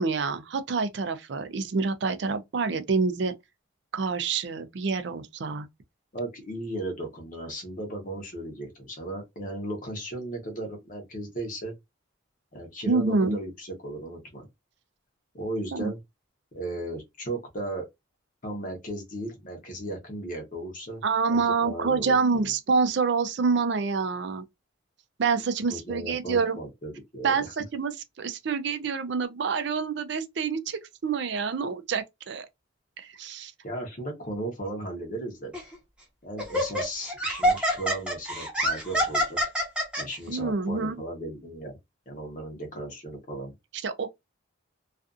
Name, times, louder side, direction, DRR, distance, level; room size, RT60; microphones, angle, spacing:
voice 1, 0.0-3.3 3.9-5.7 12.8-13.4 15.7-15.9 21.0-24.4 25.2-26.6 27.2-32.5 33.0-33.5 40.3-41.0 43.8-44.1, right 4 dB, 60° right, 0.4 m, -27 dB
voice 2, 6.1-11.7 12.5-14.5 15.3-16.0 16.5-17.9 18.4-21.0 21.3-22.5 25.7-27.5 33.6-35.5 36.2-39.4 40.0-41.8 42.1-43.5, right 1 dB, 40° left, 0.8 m, -36 dB
Laughter, 35.5-35.7 36.4-40.0, equal, 5° right, 0.8 m, -26 dB
2.4 x 2.4 x 2.4 m
head